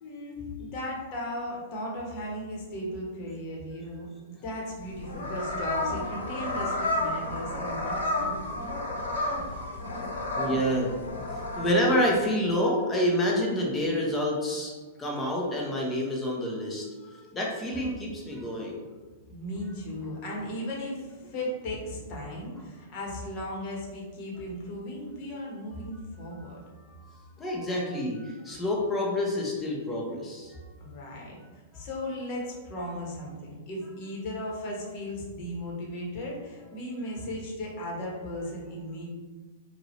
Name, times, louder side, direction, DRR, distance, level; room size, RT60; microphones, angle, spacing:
voice 1, 0.0-8.5 19.3-26.9 30.8-31.4 31.7-39.1, left 1 dB, 45° left, -3 dB, 1.4 m, -36 dB
sound 1, 4.8-11.7, left 1 dB, 75° left, 1.4 m, -31 dB
voice 2, 9.0-9.4 9.9-10.9 11.6-14.7 15.0-18.8 26.4-26.5 26.8-30.6, left 1 dB, 20° left, -2 dB, 1.1 m, -28 dB
4.8 x 2.6 x 3.2 m, 1.3 s
hypercardioid pair, 110°, 0 cm